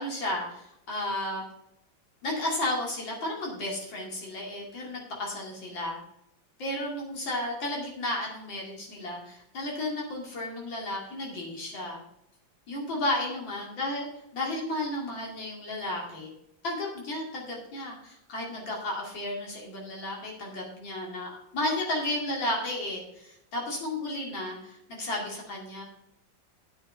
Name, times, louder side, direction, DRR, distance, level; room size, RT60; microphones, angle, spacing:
voice 1, 0.0-1.4 2.2-6.0 6.6-12.0 12.7-14.1 14.3-16.3 16.6-25.8, left 1 dB, 80° left, -2 dB, 3.2 m, -33 dB
9.5 x 6.8 x 5.4 m, 0.82 s
omnidirectional pair, 2.0 m